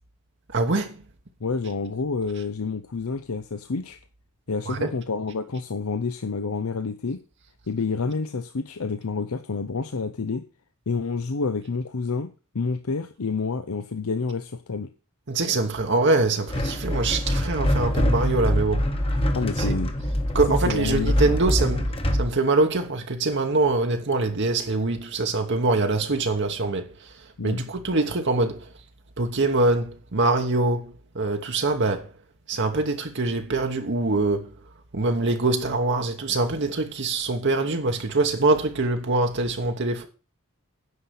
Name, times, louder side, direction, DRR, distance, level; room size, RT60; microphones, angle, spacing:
voice 1, 0.5-1.0 4.7-4.9 15.3-18.9 19.6-19.7 20.3-27.1 27.4-28.7 29.2-32.1 32.5-34.5 34.9-40.1, right 2 dB, 55° right, 1.1 m, -24 dB
voice 2, 1.4-4.0 4.5-7.2 7.7-10.4 10.9-14.9 19.3-19.9 20.7-21.4 27.4-27.6, left 4 dB, 80° left, 0.7 m, -28 dB
sound 1, 16.5-22.3, equal, 25° left, 1.2 m, -24 dB
9.7 x 5.7 x 8.1 m
head